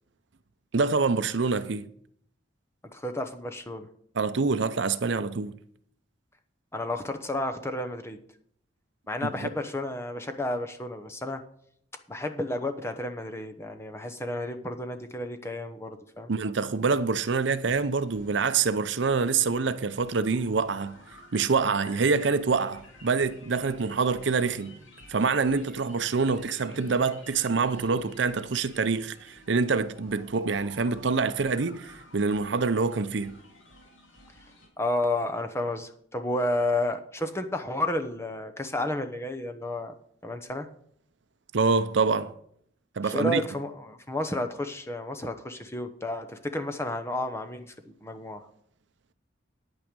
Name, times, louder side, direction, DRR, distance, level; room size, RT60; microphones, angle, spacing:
voice 1, 0.7-1.9 4.1-5.5 9.2-9.5 16.3-21.0 21.3-24.8 25.1-33.4 41.5-42.3 43.0-43.4, right 4 dB, 70° right, 0.6 m, -26 dB
voice 2, 2.9-3.9 6.7-8.2 9.1-11.4 12.1-16.3 34.8-39.9 40.2-40.7 43.0-48.4, left 1 dB, 15° left, 0.9 m, -31 dB
sound 1, 17.3-34.7, left 1 dB, 90° left, 2.5 m, -52 dB
9.8 x 9.0 x 5.2 m
head